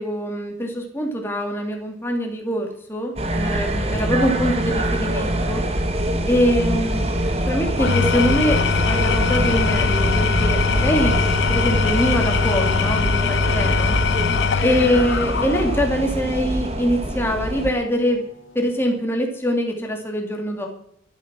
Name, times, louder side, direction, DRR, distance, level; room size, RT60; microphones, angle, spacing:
voice 1, 0.0-5.6 6.3-7.1 7.5-11.2 11.5-14.0 14.6-18.2 18.5-20.7, equal, 10° left, 1 dB, 2.5 m, -23 dB
sound 1, 3.2-17.7, right 1 dB, 30° right, 1.5 m, -24 dB
Engine / Tools, 7.7-16.0, left 7 dB, 60° left, 0.4 m, -22 dB
sound 2, 13.4-19.0, left 1 dB, 85° left, 1.8 m, -38 dB
13.5 x 11.5 x 6.0 m, 0.71 s
head